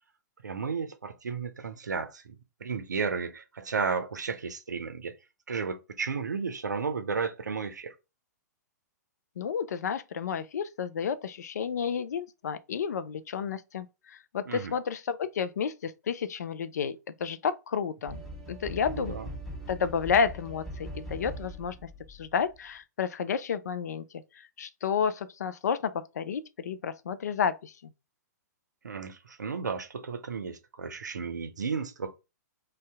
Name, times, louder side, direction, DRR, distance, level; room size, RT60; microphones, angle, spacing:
voice 1, 0.4-2.3 2.6-5.1 5.5-7.9 14.5-14.7 18.9-19.3 28.8-32.1, right 5 dB, 80° right, 0.5 m, -33 dB
voice 2, 9.4-18.2 18.5-19.2 19.7-24.0 24.3-27.7, left 6 dB, 65° left, 0.4 m, -31 dB
sound 1, 18.1-22.6, right 1 dB, 5° left, 1.3 m, -41 dB
2.7 x 2.2 x 3.3 m
figure-of-eight pair, 115°, 9 cm